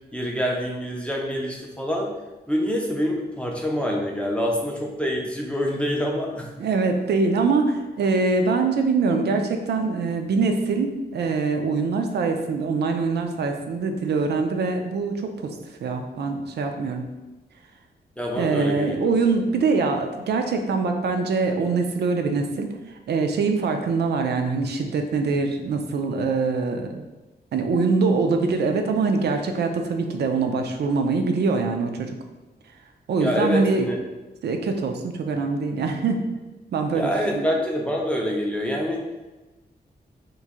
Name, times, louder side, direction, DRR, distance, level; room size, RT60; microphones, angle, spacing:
voice 1, 0.1-2.1 2.5-6.5 18.2-19.1 33.2-34.0 36.9-39.0, equal, 5° left, -1 dB, 0.4 m, -26 dB
voice 2, 6.6-15.5 15.8-17.1 18.3-22.7 23.1-27.0 27.5-32.1 33.1-33.9 34.4-36.2 36.7-37.5, right 4 dB, 75° right, 4 dB, 0.4 m, -23 dB
3.0 x 2.5 x 3.6 m, 1.1 s
wide cardioid pair, 170°, 17 cm